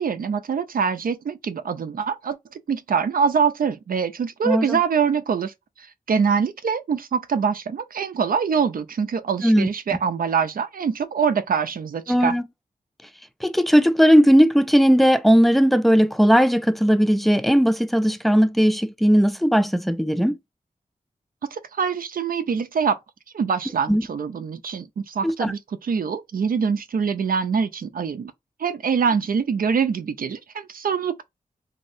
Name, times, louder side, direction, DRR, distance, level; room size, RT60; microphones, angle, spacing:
voice 1, 0.0-2.4 2.7-12.4 21.5-23.0 23.3-28.3 28.6-31.2, right 6 dB, 75° right, 0.4 m, -24 dB
voice 2, 4.4-4.8 9.4-10.0 12.1-12.4 13.4-20.4 23.9-24.0 25.2-25.5, equal, ahead, 0.4 m, -18 dB
3.1 x 2.7 x 2.6 m
wide cardioid pair, 75°, 15 cm